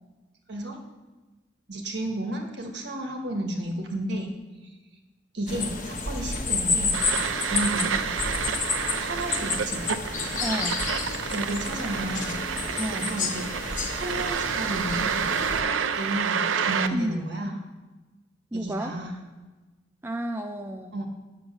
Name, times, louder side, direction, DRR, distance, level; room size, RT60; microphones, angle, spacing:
voice 1, 1.7-4.3 5.3-6.9 7.5-8.0 9.0-9.8 11.3-12.4 13.0-17.6 18.5-19.2 20.9-21.1, right 1 dB, 60° right, 3 dB, 1.5 m, -32 dB
sound 1, 5.5-15.6, left 4 dB, 40° left, 1.1 m, -30 dB
sound 2, 6.9-16.9, right 7 dB, 90° right, 0.5 m, -29 dB
voice 2, 10.4-10.8 12.8-13.1 16.9-17.3 18.5-19.0 20.0-20.9, right 1 dB, 10° right, 5 dB, 0.3 m, -31 dB
7.9 x 6.7 x 7.0 m, 1.2 s
head